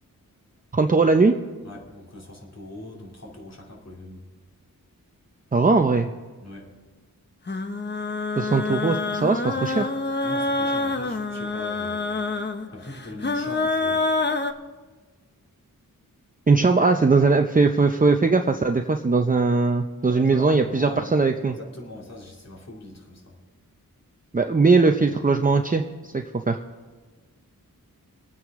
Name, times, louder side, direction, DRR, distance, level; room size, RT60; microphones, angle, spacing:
voice 1, 0.7-1.3 5.5-6.1 8.4-9.9 16.5-21.6 24.3-26.6, right 4 dB, 25° right, 4 dB, 0.6 m, -20 dB
voice 2, 1.6-4.2 6.4-6.7 10.2-12.1 12.7-14.1 20.1-21.1 21.5-23.4, left 2 dB, 50° left, -2 dB, 2.8 m, -41 dB
sound 1, 7.5-14.5, left 3 dB, 30° left, 0.8 m, -26 dB
24.0 x 9.3 x 3.6 m, 1.4 s
wide cardioid pair, 85°, 35 cm